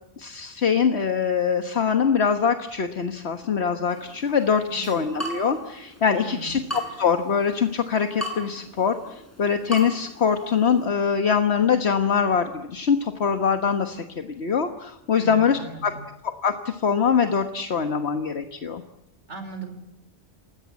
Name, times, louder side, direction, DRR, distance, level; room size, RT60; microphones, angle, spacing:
voice 1, 0.2-15.9 16.2-18.8, left 6 dB, 70° left, 7 dB, 1.6 m, -23 dB
Water tap faucet / Drip, 3.9-10.9, equal, 10° left, 6.9 m, -38 dB
voice 2, 4.6-4.9 6.2-6.6 15.1-16.0 19.3-19.7, right 3 dB, 85° right, 7 dB, 5.3 m, -38 dB
28.5 x 20.0 x 8.5 m, 0.91 s
omnidirectional pair, 1.2 m